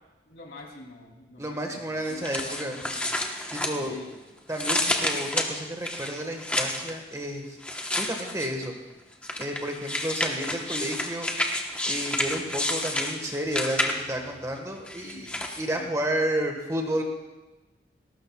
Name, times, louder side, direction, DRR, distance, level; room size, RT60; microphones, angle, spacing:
voice 1, 0.3-3.1 3.7-4.1 15.0-15.3 15.8-15.9, left 1 dB, 65° left, 0 dB, 3.0 m, -46 dB
voice 2, 1.4-2.8 3.5-4.0 4.5-7.6 8.0-8.7 9.4-11.3 11.8-13.8 14.1-15.3 15.6-17.0, right 1 dB, 15° right, 2 dB, 1.5 m, -31 dB
sound 1, 2.0-4.1 4.5-6.9 7.6-8.6 9.2-14.2 14.9-15.6, left 1 dB, 5° left, 1.1 m, -30 dB
19.0 x 18.5 x 2.4 m, 1.1 s
head